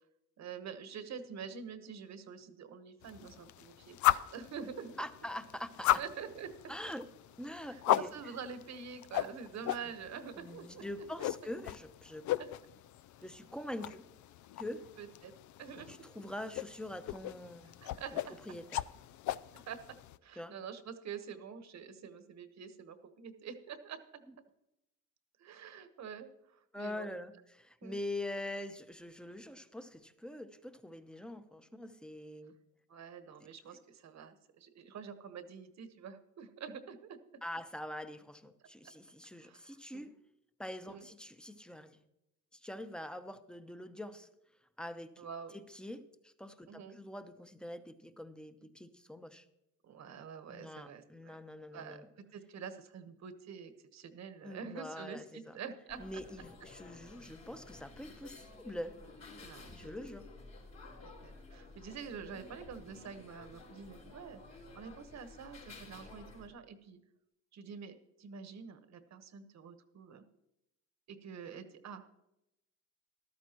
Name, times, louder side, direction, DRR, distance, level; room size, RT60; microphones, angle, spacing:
voice 1, 0.4-5.0 6.0-6.5 7.5-11.5 12.4-12.5 15.0-15.3 15.6-16.0 17.8-18.4 19.5-19.8 20.2-24.0 25.4-27.1 27.8-28.0 32.9-37.2 39.4-40.1 40.9-41.1 45.2-45.5 46.7-47.0 49.8-51.4 51.7-56.2 59.4-59.9 61.0-67.0 67.5-70.2 71.1-72.1, right 6 dB, 60° right, 10 dB, 1.2 m, -47 dB
sound 1, 3.0-20.2, left 13 dB, 75° left, 0.4 m, -37 dB
voice 2, 5.0-6.0 6.7-7.0 7.4-8.1 10.4-12.2 13.2-14.1 14.6-14.9 15.9-17.7 18.5-18.8 20.4-20.5 26.7-32.5 37.4-40.1 40.6-42.0 42.5-44.3 44.8-45.3 45.5-49.5 50.5-52.1 54.4-55.5 56.0-59.0 59.7-60.3, left 1 dB, 5° left, 10 dB, 0.8 m, -44 dB
sound 2, 55.9-66.5, left 3 dB, 60° left, 4.1 m, -53 dB
14.0 x 12.5 x 3.0 m, 0.87 s
cardioid pair, 90°, 30 cm